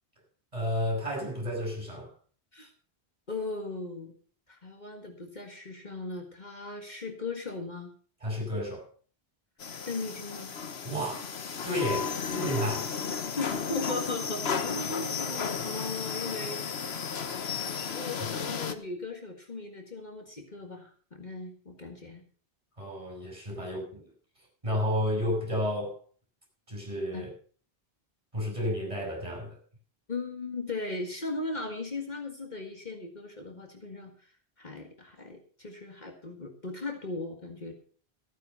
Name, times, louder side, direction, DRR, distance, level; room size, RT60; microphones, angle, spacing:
voice 1, 0.5-2.1 8.2-8.8 10.8-11.3 11.6-12.9 22.8-24.0 24.6-26.0 26.7-27.3 28.3-29.6, equal, 30° right, 0 dB, 7.2 m, -31 dB
voice 2, 3.3-4.2 4.5-7.9 9.9-10.5 13.4-16.7 17.9-22.2 23.8-23.9 27.1-27.3 30.1-34.3 34.6-37.8, left 3 dB, 45° left, 3 dB, 2.0 m, -38 dB
sound 1, 9.6-18.7, left 6 dB, 85° left, 1.3 m, -34 dB
15.0 x 9.3 x 5.6 m, 0.41 s
omnidirectional pair, 1.0 m